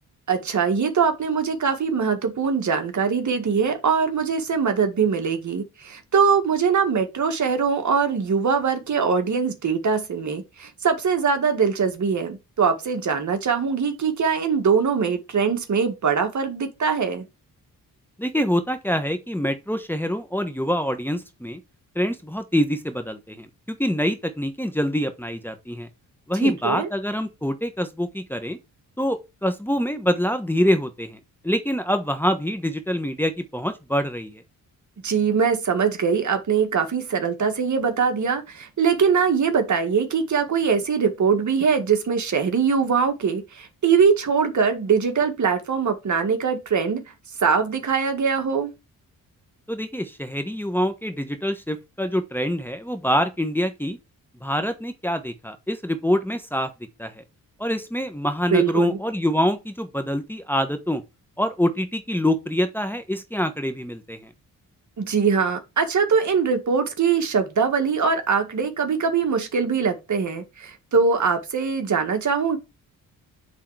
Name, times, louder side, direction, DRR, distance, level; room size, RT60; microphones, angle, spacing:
voice 1, 0.3-17.3 26.4-26.9 35.0-47.0 47.4-48.7 58.5-59.0 65.0-72.6, right 6 dB, 55° right, 1.8 m, -22 dB
voice 2, 18.2-21.6 21.9-25.9 26.3-28.6 29.0-31.2 31.4-34.4 49.7-54.0 54.4-56.7 57.0-57.2 57.6-61.0 61.4-64.3, equal, 5° left, 1.2 m, -25 dB
7.9 x 3.8 x 4.8 m
cardioid pair, 80°, 36 cm